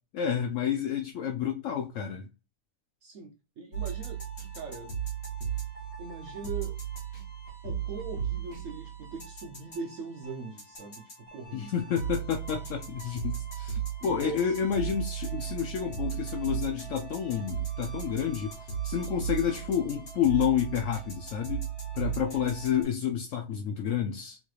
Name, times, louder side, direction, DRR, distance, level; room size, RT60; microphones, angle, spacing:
voice 1, 0.1-2.3 11.5-18.5 18.8-21.6 21.9-24.4, left 8 dB, 75° left, 0.7 m, -30 dB
voice 2, 3.0-4.2 4.5-4.9 6.0-6.8 7.6-11.8 14.0-14.5, right 4 dB, 60° right, 0.9 m, -41 dB
sound 1, 3.7-22.8, right 8 dB, 55° left, 2.1 m, -36 dB
4.0 x 3.1 x 2.3 m
omnidirectional pair, 1.9 m